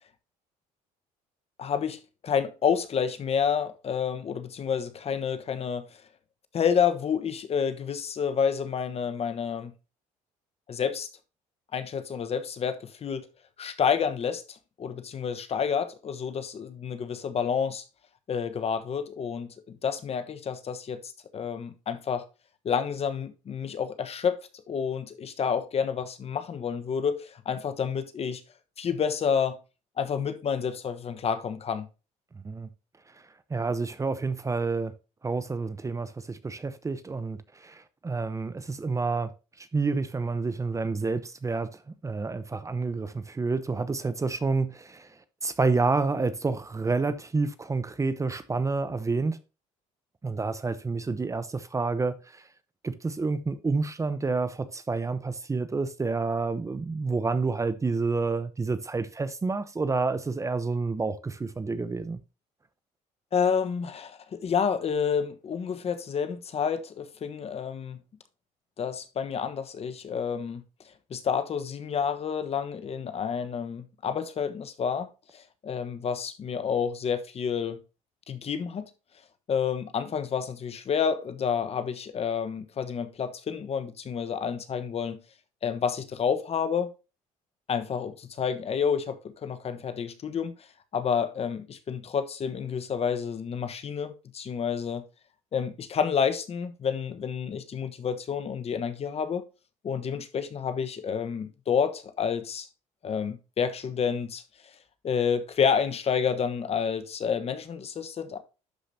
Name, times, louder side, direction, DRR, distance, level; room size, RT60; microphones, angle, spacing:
voice 1, 1.6-6.0 6.5-9.7 10.7-11.1 11.7-13.3 13.6-17.8 18.3-22.2 22.6-24.4 24.7-28.4 28.8-29.6 30.0-31.9 63.3-68.0 68.8-70.6 71.1-75.1 75.3-77.8 78.3-78.9 79.5-85.2 85.6-86.9 87.7-90.5 90.9-95.0 95.5-99.4 99.8-102.7 103.0-104.7 105.0-108.4, left 7 dB, 45° left, 1.2 m, -29 dB
voice 2, 33.5-34.9 35.2-39.3 39.6-41.7 42.0-45.1 45.4-49.4 50.2-52.4 52.8-62.2, right 4 dB, 20° right, 0.8 m, -29 dB
11.5 x 5.1 x 2.7 m
supercardioid pair, 85°, 14 cm